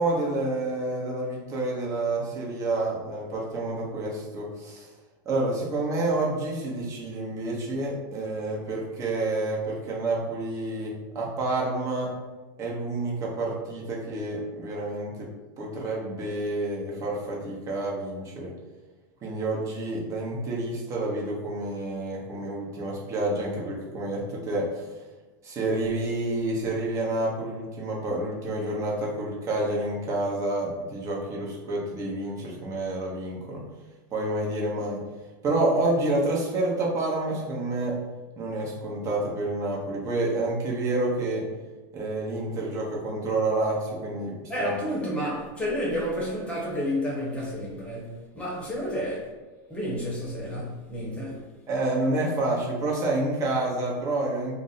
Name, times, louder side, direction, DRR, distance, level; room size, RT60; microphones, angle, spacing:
voice 1, 0.0-4.9 5.2-12.1 12.6-15.3 15.6-18.5 19.2-24.9 25.4-33.6 34.1-35.0 35.4-38.0 38.4-41.5 41.9-44.7 51.7-54.5, right 2 dB, 30° right, -3 dB, 0.9 m, -29 dB
voice 2, 44.5-49.3 49.7-51.4, equal, 10° left, -5 dB, 0.9 m, -30 dB
2.5 x 2.0 x 3.9 m, 1.2 s
supercardioid pair, 125°, 10 cm